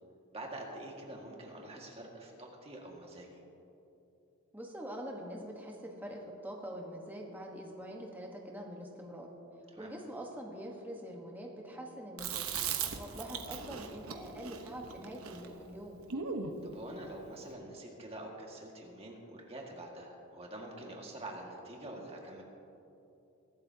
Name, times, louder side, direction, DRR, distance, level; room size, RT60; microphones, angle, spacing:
voice 1, 0.3-3.4 9.7-9.9 16.6-22.4, right 1 dB, 30° right, -1 dB, 1.9 m, -46 dB
voice 2, 4.5-9.3 9.8-12.5 13.0-16.0, equal, 10° right, -1 dB, 1.2 m, -44 dB
Chewing mastication, 12.2-16.6, right 6 dB, 90° right, 1.1 m, -39 dB
22.5 x 12.0 x 2.8 m, 2.9 s
head